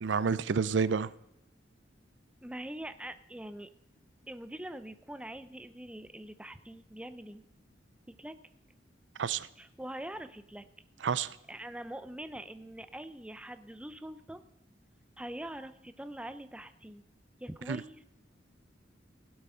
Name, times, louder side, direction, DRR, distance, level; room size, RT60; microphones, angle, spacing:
voice 1, 0.0-1.1 9.2-9.5 11.0-11.4 17.7-17.8, right 5 dB, 70° right, 0.5 m, -29 dB
voice 2, 2.4-3.7 4.3-7.4 8.2-8.4 9.6-10.6 11.5-14.4 15.2-17.0 17.4-18.0, right 1 dB, 5° right, 0.5 m, -43 dB
16.5 x 8.0 x 5.5 m
head